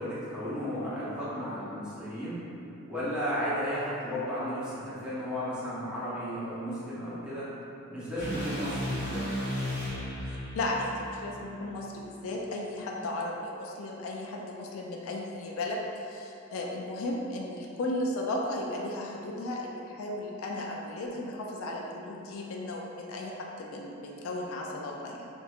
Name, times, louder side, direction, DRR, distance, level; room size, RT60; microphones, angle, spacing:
voice 1, 0.0-2.4 2.9-7.5 7.9-9.2, equal, 5° right, -13 dB, 1.0 m, -34 dB
sound 1, 8.1-12.3, equal, 50° left, 1.3 m, -35 dB
voice 2, 10.5-25.3, left 1 dB, 70° left, -1 dB, 0.3 m, -35 dB
4.5 x 2.6 x 2.4 m, 2.9 s
head